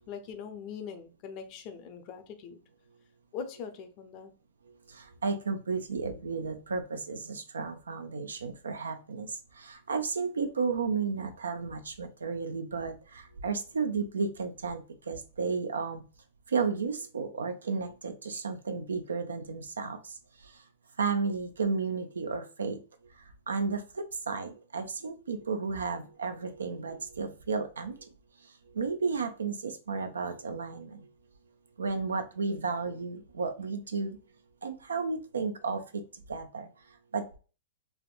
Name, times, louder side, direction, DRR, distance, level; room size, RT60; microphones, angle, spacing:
voice 1, 0.1-2.6 3.3-4.3, left 6 dB, 45° left, 0.6 m, -41 dB
voice 2, 4.9-16.0 16.5-20.6 21.0-22.8 23.1-28.1 28.4-31.1 31.8-34.2 34.6-37.4, right 4 dB, 85° right, 0.4 m, -33 dB
3.4 x 2.1 x 2.4 m
hypercardioid pair, 110°, 0 cm